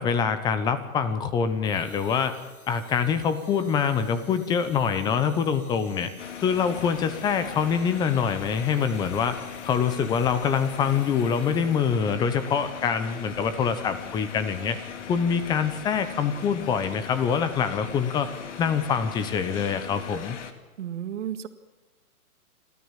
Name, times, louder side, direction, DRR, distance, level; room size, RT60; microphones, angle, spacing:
voice 1, 0.0-2.3 2.7-6.1 6.4-9.4 9.6-14.8 15.1-18.3 18.6-20.4, left 6 dB, 10° left, 12 dB, 0.8 m, -25 dB
sound 1, 1.6-12.2, left 3 dB, 70° left, 6.2 m, -53 dB
sound 2, 5.0-5.3 5.7-5.9 6.4-6.5 6.8-7.1 7.4-7.7 8.2-9.9 10.1-11.7 12.1-14.3 14.6-14.7 15.0-17.1, left 3 dB, 30° left, 7.4 m, -51 dB
sound 3, 6.2-20.5, left 7 dB, 50° left, 2.4 m, -40 dB
voice 2, 20.8-21.5, right 10 dB, 50° right, 9 dB, 1.9 m, -32 dB
30.0 x 13.0 x 7.4 m, 1.3 s
hypercardioid pair, 140°, 45 cm